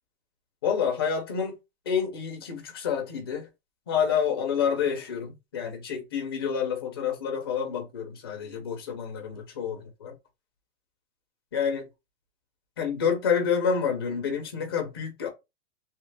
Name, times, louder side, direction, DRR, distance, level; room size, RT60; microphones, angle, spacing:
voice 1, 0.6-1.6 1.9-3.5 3.9-10.1 11.5-11.9 12.8-15.3, left 7 dB, 20° left, 0.4 m, -28 dB
2.9 x 2.4 x 3.2 m
supercardioid pair, 180°, 36 cm